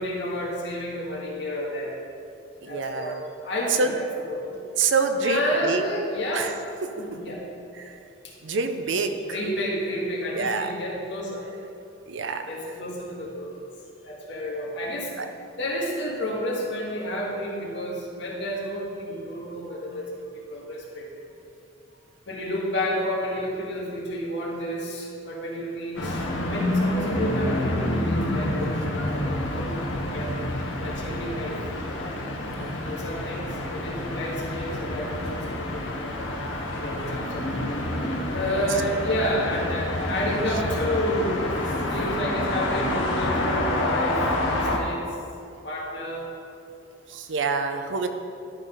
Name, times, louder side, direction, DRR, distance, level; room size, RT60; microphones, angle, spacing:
voice 1, 0.0-2.0 2.7-3.2 3.4-4.6 5.2-6.5 7.0-7.4 9.3-11.5 12.5-13.6 14.0-15.1 15.6-20.1 20.5-21.1 22.3-30.3 30.8-31.6 32.9-36.3 36.8-37.5 38.3-41.4 41.9-45.1 45.6-46.3, equal, 60° left, -3 dB, 1.7 m, -30 dB
voice 2, 2.6-3.2 3.8-3.9 4.8-5.8 6.3-6.5 7.8-8.0 8.4-9.4 10.3-10.7 12.1-12.4 15.2-15.3 31.1-31.2 32.5-33.0 38.4-38.7 47.1-48.1, right 4 dB, 70° right, 7 dB, 0.6 m, -27 dB
sound 1, 26.0-44.8, left 1 dB, 75° left, 1.0 m, -28 dB
11.0 x 4.0 x 5.5 m, 2.6 s
head